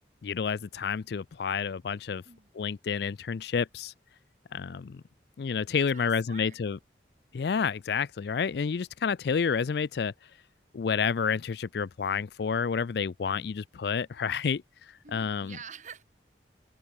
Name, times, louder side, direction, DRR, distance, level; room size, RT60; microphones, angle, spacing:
voice 1, 0.2-2.2 2.5-3.9 4.5-5.0 5.4-6.8 7.3-10.1 10.7-14.6 15.1-15.6, left 6 dB, 60° left, 0.4 m, -29 dB
voice 2, 5.8-6.6 15.0-16.0, right 6 dB, 40° right, 2.1 m, -47 dB
head